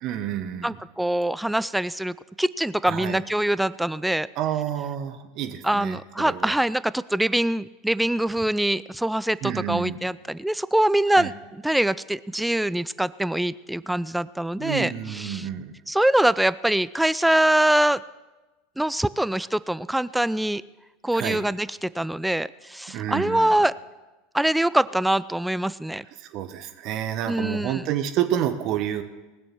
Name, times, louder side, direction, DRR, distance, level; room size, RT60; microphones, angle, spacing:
voice 1, 0.0-0.7 2.9-3.2 4.4-6.5 9.4-10.0 11.2-11.3 14.6-15.7 21.1-21.4 22.9-23.5 26.2-29.0, right 11 dB, 50° right, 9 dB, 1.3 m, -29 dB
voice 2, 0.6-4.3 5.6-15.5 15.9-18.0 18.8-20.6 21.0-23.7 24.3-26.0 27.3-27.8, right 1 dB, 5° right, 18 dB, 0.4 m, -24 dB
19.5 x 7.0 x 6.1 m, 1.1 s
hypercardioid pair, 85°, 0 cm